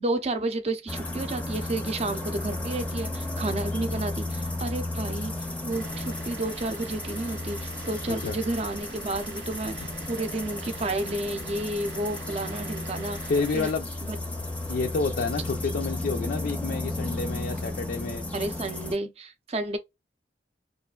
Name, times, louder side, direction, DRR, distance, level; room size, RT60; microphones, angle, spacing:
voice 1, 0.0-5.3 5.6-13.7 14.0-14.2 18.3-19.8, right 2 dB, 35° right, 0.6 m, -31 dB
sound 1, 0.9-18.9, left 2 dB, 10° left, 0.6 m, -34 dB
Vehicle / Engine, 5.7-13.7, right 5 dB, 85° right, 0.5 m, -45 dB
voice 2, 13.3-13.9 14.7-18.2, left 4 dB, 55° left, 0.4 m, -29 dB
3.1 x 2.4 x 2.3 m
head